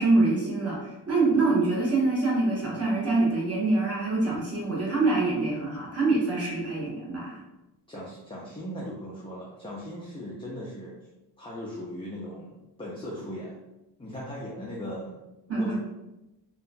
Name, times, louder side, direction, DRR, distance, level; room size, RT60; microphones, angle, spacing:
voice 1, 0.0-7.4 15.5-15.8, right 3 dB, 35° right, -5 dB, 1.3 m, -25 dB
voice 2, 7.9-11.0 11.4-13.6 14.0-15.2 15.5-15.8, equal, 15° left, -5 dB, 0.5 m, -38 dB
2.8 x 2.2 x 2.6 m, 0.97 s
cardioid pair, 80°, 43 cm